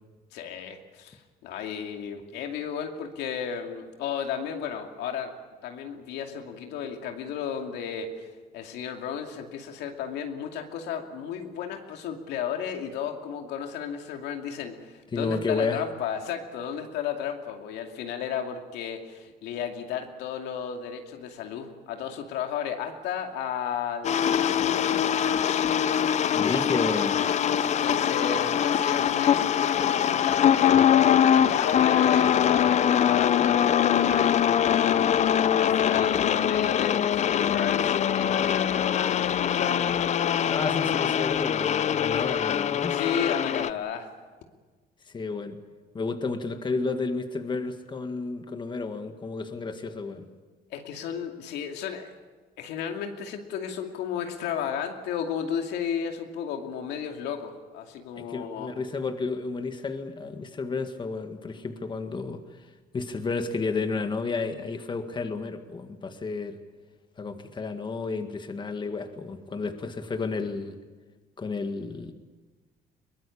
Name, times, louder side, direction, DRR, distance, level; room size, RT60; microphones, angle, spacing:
voice 1, 0.3-5.3 5.6-8.3 8.5-25.0 27.6-34.6 35.5-40.2 42.9-44.1 50.7-52.1 52.6-58.7, left 8 dB, 85° left, 4 dB, 2.5 m, -33 dB
voice 2, 15.1-15.8 26.3-27.1 40.5-43.0 45.0-45.6 45.9-50.3 58.2-66.6 67.2-70.8 71.4-72.1, left 4 dB, 25° left, 7 dB, 1.8 m, -31 dB
sound 1, 24.0-43.7, left 9 dB, 45° left, 0.6 m, -23 dB
22.5 x 19.5 x 8.7 m, 1.3 s
cardioid pair, 110°, 17 cm